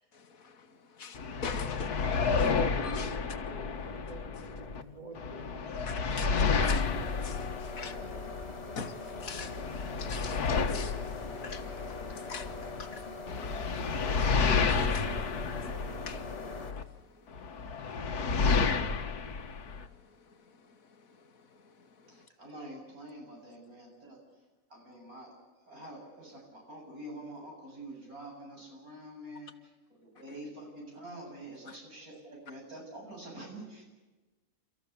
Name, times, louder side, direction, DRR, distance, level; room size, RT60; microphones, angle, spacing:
voice 1, 1.0-1.9 2.4-2.5 2.8-3.4 5.8-6.9 7.2-7.9 8.8-9.6 10.0-11.0 11.4-13.0 13.4-13.5 14.6-15.0 16.1-16.2, left 6 dB, 65° left, 1.6 m, -42 dB
sound 1, 1.1-4.8 5.1-8.8 9.2-12.8 13.3-16.8 17.3-19.9, left 5 dB, 80° left, 1.9 m, -31 dB
voice 2, 2.1-5.6, right 2 dB, 30° right, 3.1 m, -45 dB
sound 2, 6.6-16.7, left 3 dB, 45° left, 2.2 m, -42 dB
voice 3, 22.1-24.2 24.7-25.3 25.6-33.9, right 1 dB, 70° right, 8.7 m, -46 dB
30.0 x 14.5 x 8.4 m
omnidirectional pair, 1.6 m